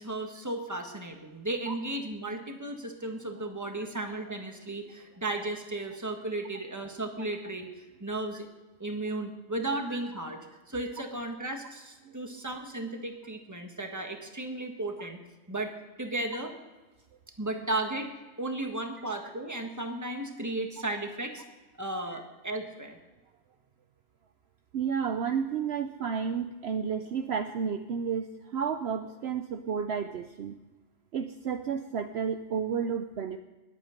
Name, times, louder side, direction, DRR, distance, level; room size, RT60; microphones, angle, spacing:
voice 1, 0.0-8.5 8.8-10.4 10.7-15.2 15.5-15.7 16.0-16.5 17.4-18.1 18.4-21.4 21.8-23.0, right 2 dB, 15° right, 4 dB, 1.5 m, -35 dB
voice 2, 24.7-30.6 31.1-33.4, right 7 dB, 60° right, 8 dB, 0.9 m, -31 dB
20.5 x 8.6 x 5.2 m, 1.2 s
omnidirectional pair, 1.3 m